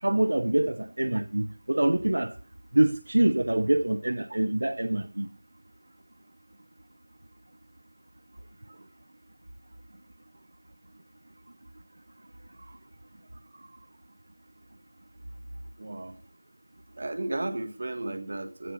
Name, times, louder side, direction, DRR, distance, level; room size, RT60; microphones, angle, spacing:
voice 1, 0.0-2.3 2.7-5.3, right 1 dB, 75° right, 0.8 m, -25 dB
voice 2, 15.8-16.2 16.9-18.7, right 2 dB, 45° right, 1.4 m, -35 dB
15.5 x 5.3 x 6.7 m
figure-of-eight pair, 180°, 0 cm